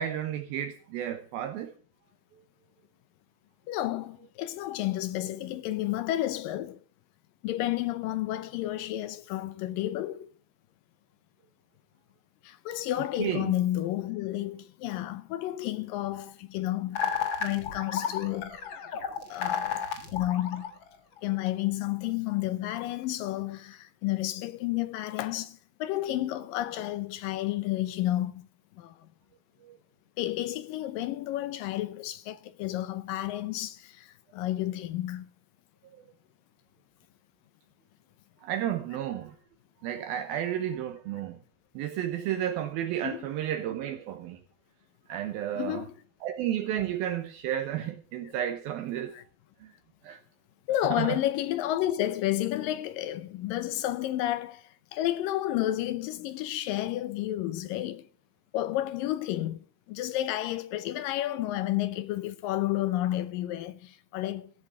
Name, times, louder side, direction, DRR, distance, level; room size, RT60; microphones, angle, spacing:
voice 1, 0.0-1.7 13.2-13.5 29.6-29.8 38.4-39.4 39.8-41.4 41.8-44.4 45.1-45.8 46.2-49.2 49.6-49.7 50.0-50.2 50.9-51.2, right 11 dB, 75° right, 2.6 m, -32 dB
voice 2, 3.7-6.8 7.4-10.3 12.4-17.1 17.4-18.6 19.3-19.8 20.1-20.7 21.2-28.5 28.7-29.1 30.2-35.3 43.0-43.2 45.6-45.9 49.1-49.2 50.7-58.1 58.5-64.5, left 14 dB, 80° left, 2.1 m, -31 dB
sound 1, 17.0-21.2, left 7 dB, 60° left, 1.3 m, -32 dB
16.0 x 7.9 x 7.0 m
omnidirectional pair, 4.7 m